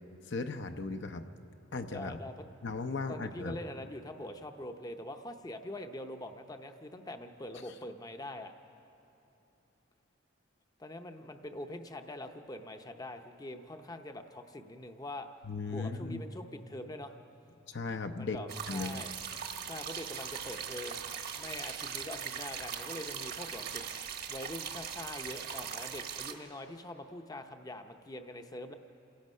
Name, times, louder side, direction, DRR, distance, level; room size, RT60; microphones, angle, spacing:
voice 1, 0.3-1.3 1.7-2.2 2.6-3.6 15.4-16.2 17.7-18.4 18.7-19.0, left 3 dB, 65° left, 7 dB, 0.7 m, -37 dB
voice 2, 1.9-2.4 3.1-8.5 10.8-15.3 15.7-17.2 18.2-19.1 19.6-23.8 24.3-28.7, left 1 dB, 20° left, 6 dB, 0.7 m, -44 dB
sound 1, 18.5-26.3, right 7 dB, 55° right, 1.3 m, -40 dB
28.0 x 17.0 x 5.5 m, 3.0 s
head